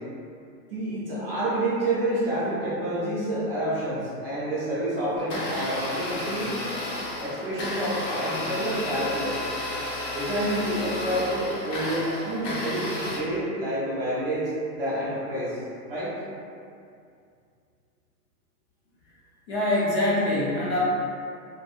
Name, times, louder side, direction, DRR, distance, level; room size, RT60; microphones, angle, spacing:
voice 1, 0.7-6.5 7.2-9.4 10.1-14.4 14.7-15.6 15.9-16.1, right 1 dB, 40° right, -9 dB, 0.5 m, -28 dB
Domestic sounds home sounds, 5.2-13.2, left 1 dB, 70° left, 0.8 m, -32 dB
voice 2, 19.5-20.8, left 1 dB, 45° left, -7 dB, 0.5 m, -24 dB
2.8 x 2.0 x 2.3 m, 2.4 s
hypercardioid pair, 165°, 50 cm